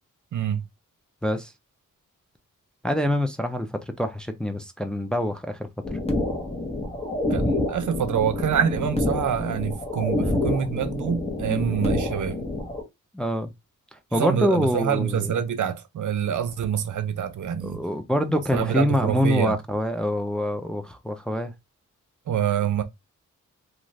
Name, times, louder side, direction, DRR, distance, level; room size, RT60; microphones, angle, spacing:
voice 1, 0.3-0.6 7.3-12.5 14.1-17.8 18.5-19.6 22.3-22.8, right 8 dB, 65° right, 0.6 m, -26 dB
voice 2, 2.8-5.6 5.9-6.0 10.2-10.4 11.5-11.6 13.1-13.5 13.9-15.3 17.6-21.5, equal, 5° left, 0.5 m, -25 dB
sound 1, 5.8-12.8, left 2 dB, 20° left, 1.0 m, -27 dB
2.5 x 2.5 x 3.2 m
cardioid pair, 70°, 33 cm